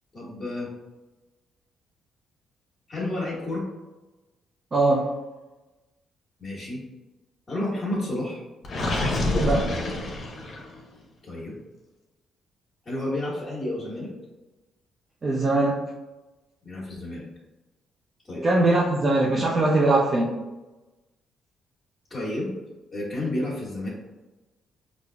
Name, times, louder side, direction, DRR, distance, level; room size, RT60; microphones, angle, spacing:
voice 1, 0.1-0.7 2.9-3.6 6.4-6.8 7.5-8.4 11.2-11.6 12.8-14.1 16.6-17.2 18.3-18.4 22.1-22.5 22.9-23.9, left 1 dB, 25° left, -8 dB, 1.3 m, -30 dB
voice 2, 4.7-5.1 9.4-9.7 15.2-15.8 18.4-20.3, right 2 dB, 35° right, -3 dB, 0.5 m, -21 dB
Gurgling, 8.6-10.8, left 1 dB, 55° left, 0.8 m, -27 dB
5.0 x 2.5 x 2.3 m, 1.1 s
cardioid pair, 90°, 0 cm